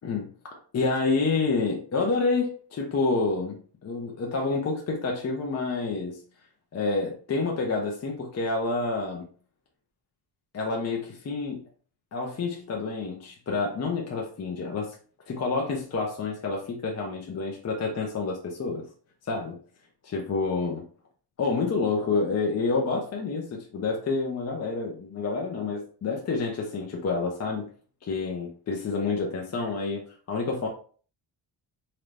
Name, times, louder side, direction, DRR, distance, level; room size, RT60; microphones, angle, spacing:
voice 1, 0.7-6.2 6.7-9.2 10.5-11.6 12.1-15.0 15.3-18.8 19.3-19.6 20.0-20.8 21.4-27.7 28.0-30.7, left 3 dB, 35° left, 0 dB, 0.8 m, -28 dB
3.8 x 2.9 x 3.3 m, 0.41 s
cardioid pair, 145°, 43 cm